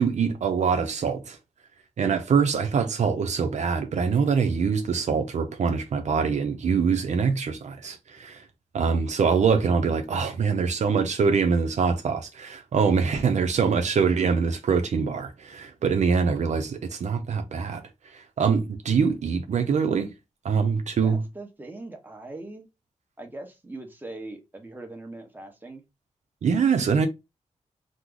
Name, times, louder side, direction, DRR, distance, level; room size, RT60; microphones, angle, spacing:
voice 1, 0.0-1.4 2.0-8.5 8.7-20.1 20.4-21.2 26.4-27.1, right 5 dB, 70° right, 0.5 m, -24 dB
voice 2, 21.0-22.7 23.2-25.8, right 2 dB, 15° right, 1.0 m, -41 dB
3.1 x 2.0 x 3.7 m
cardioid pair, 80°, 13 cm